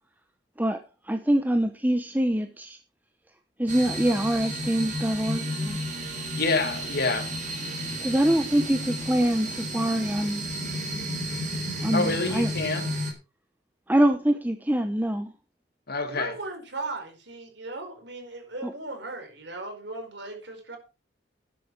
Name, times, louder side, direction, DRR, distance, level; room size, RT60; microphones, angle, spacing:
voice 1, 1.0-2.8 3.6-5.8 8.0-10.4 11.8-12.5 13.9-15.3 18.6-18.7, right 1 dB, 10° right, 0.9 m, -24 dB
sound 1, 3.7-13.1, equal, 40° right, 4.2 m, -32 dB
voice 2, 6.4-7.3 11.9-12.8 15.9-16.3, left 3 dB, 55° left, 2.6 m, -27 dB
voice 3, 16.1-20.8, right 2 dB, 65° right, 4.8 m, -37 dB
12.5 x 10.5 x 4.8 m
head